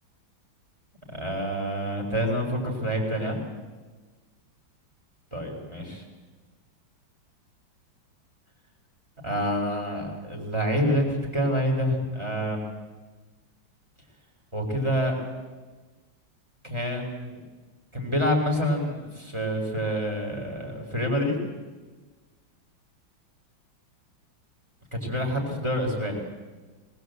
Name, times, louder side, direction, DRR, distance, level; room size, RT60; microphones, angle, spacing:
voice 1, 1.1-3.4 5.3-6.0 9.2-12.6 14.5-15.1 16.6-17.4 17.9-21.4 24.9-26.2, equal, 15° right, 1 dB, 4.4 m, -27 dB
20.5 x 20.0 x 8.0 m, 1.3 s
omnidirectional pair, 2.2 m